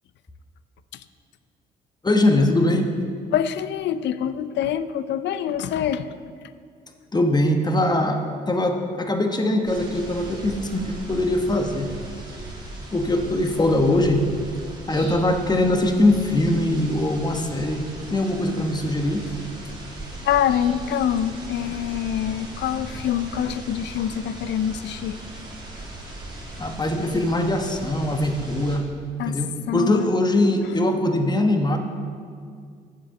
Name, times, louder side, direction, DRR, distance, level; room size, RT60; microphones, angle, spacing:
voice 1, 2.0-2.9 7.1-11.9 12.9-14.2 14.9-19.3 26.6-28.9 29.2-31.8, left 1 dB, 20° left, 4 dB, 1.3 m, -22 dB
voice 2, 3.3-6.1 20.2-25.2 29.2-29.4 29.7-30.1, left 9 dB, 60° left, 14 dB, 0.5 m, -25 dB
sound 1, 9.6-28.8, right 1 dB, 20° right, 2.7 m, -38 dB
7.4 x 6.9 x 6.5 m, 2.2 s
hypercardioid pair, 55°, 20 cm